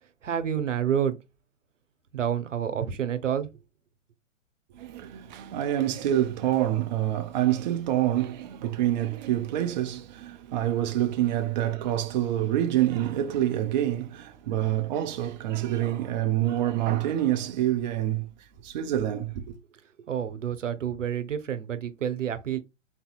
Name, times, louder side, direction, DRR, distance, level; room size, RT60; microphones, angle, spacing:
voice 1, 0.2-1.2 2.1-3.5 20.1-22.6, right 9 dB, 75° right, 0.8 m, -28 dB
voice 2, 4.7-19.6, right 12 dB, 35° right, 0.5 m, -27 dB
4.1 x 2.7 x 2.3 m
figure-of-eight pair, 120°, 38 cm